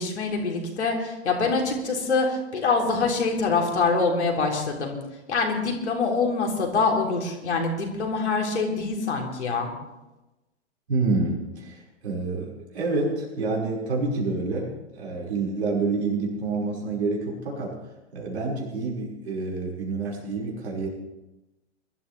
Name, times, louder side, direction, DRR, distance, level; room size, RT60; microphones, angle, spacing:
voice 1, 0.0-5.0 5.3-9.7, left 4 dB, 65° left, 0 dB, 3.5 m, -25 dB
voice 2, 10.9-17.8 18.1-20.9, right 3 dB, 65° right, -3 dB, 5.6 m, -28 dB
22.0 x 13.0 x 3.5 m, 0.99 s
figure-of-eight pair, 100°, 36 cm